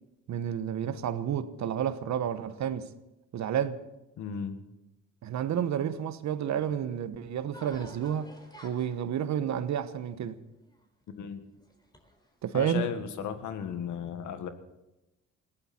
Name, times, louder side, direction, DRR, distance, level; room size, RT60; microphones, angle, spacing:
voice 1, 0.3-2.9 3.3-3.8 5.2-8.3 8.6-10.4 12.4-12.8, right 9 dB, 65° right, 1.1 m, -30 dB
voice 2, 4.2-4.6 11.2-11.4 12.5-14.5, left 7 dB, 75° left, 1.8 m, -35 dB
sound 1, 7.5-11.1 11.6-12.4, equal, 15° left, 3.8 m, -52 dB
20.0 x 16.0 x 4.4 m
cardioid pair, 90°, 30 cm